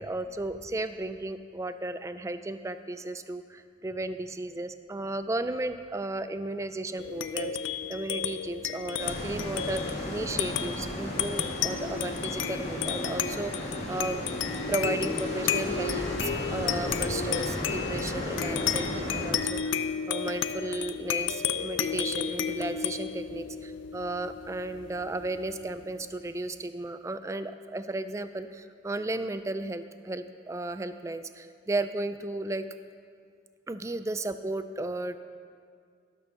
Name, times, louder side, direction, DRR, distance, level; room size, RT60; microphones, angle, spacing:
voice 1, 0.0-9.8 10.1-14.2 14.7-32.7 33.7-35.2, right 2 dB, 15° right, 11 dB, 0.3 m, -34 dB
sound 1, 7.0-25.8, left 7 dB, 80° left, 0.5 m, -33 dB
sound 2, 9.0-19.3, equal, 35° left, 2.1 m, -35 dB
12.5 x 6.1 x 6.9 m, 2.3 s
head